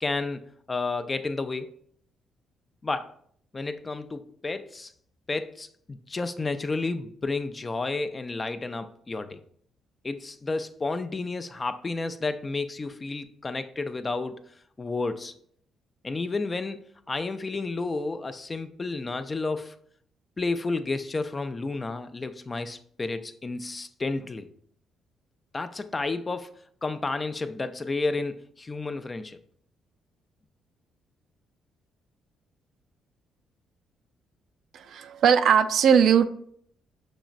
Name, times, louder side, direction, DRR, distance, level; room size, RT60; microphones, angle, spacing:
voice 1, 0.0-1.7 2.8-3.1 3.5-4.9 5.3-9.4 10.0-15.3 16.0-19.8 20.4-24.5 25.5-29.4, left 3 dB, 25° left, 10 dB, 0.4 m, -31 dB
voice 2, 34.7-36.2, right 7 dB, 70° right, 9 dB, 0.3 m, -19 dB
6.1 x 3.0 x 2.5 m, 0.62 s
cardioid pair, 90°, 0 cm